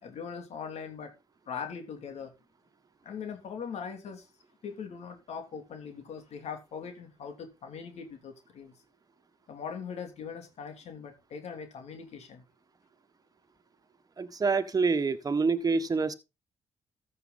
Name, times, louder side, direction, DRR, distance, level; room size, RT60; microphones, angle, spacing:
voice 1, 0.0-1.1 1.5-2.3 3.0-4.3 4.6-8.7 9.5-12.4, left 6 dB, 70° left, 3.0 m, -41 dB
voice 2, 14.2-16.1, right 4 dB, 30° right, 1.4 m, -27 dB
14.0 x 6.7 x 4.0 m
cardioid pair, 90°, 12 cm